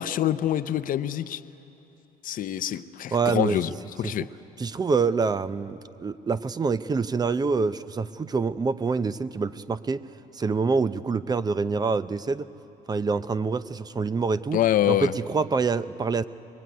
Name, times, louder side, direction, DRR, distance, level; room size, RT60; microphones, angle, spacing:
voice 1, 0.0-1.4 2.2-3.7 4.0-4.3 14.5-15.1, left 12 dB, 55° left, 0.6 m, -25 dB
voice 2, 3.1-3.6 4.0-4.3 4.6-10.0 10.3-12.5 12.9-14.6 14.9-16.2, right 4 dB, 25° right, 0.5 m, -26 dB
23.0 x 20.5 x 9.3 m
cardioid pair, 110°, 17 cm